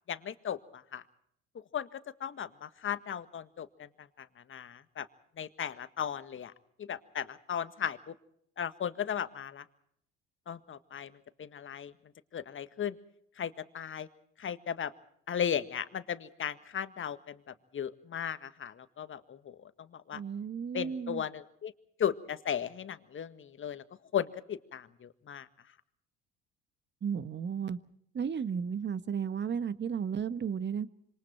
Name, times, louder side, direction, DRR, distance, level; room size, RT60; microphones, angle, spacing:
voice 1, 0.1-1.0 1.7-3.9 4.2-5.0 5.4-6.5 6.8-8.0 8.6-9.6 10.5-11.1 11.4-11.9 12.3-12.9 13.4-14.1 14.4-14.9 15.3-17.4 17.7-20.2 20.7-21.7 22.0-23.8 24.1-25.5, left 8 dB, 35° left, 11 dB, 1.7 m, -36 dB
voice 2, 20.1-21.2 27.0-27.8 28.1-30.9, right 7 dB, 35° right, 14 dB, 1.4 m, -34 dB
26.5 x 26.0 x 4.5 m, 0.70 s
hypercardioid pair, 60°, 33 cm